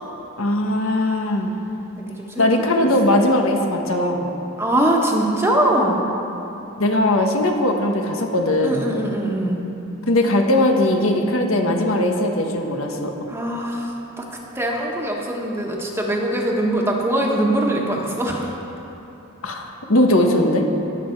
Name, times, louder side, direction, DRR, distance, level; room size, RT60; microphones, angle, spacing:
voice 1, 0.4-1.6 2.4-4.3 6.8-8.8 10.1-13.1 19.4-20.7, left 1 dB, 75° left, 3 dB, 1.3 m, -19 dB
voice 2, 2.0-2.4 2.8-3.1 4.6-6.1 8.6-9.6 13.3-14.2 14.5-18.6, right 1 dB, 10° right, -1 dB, 1.3 m, -22 dB
20.5 x 7.7 x 4.6 m, 3.0 s
head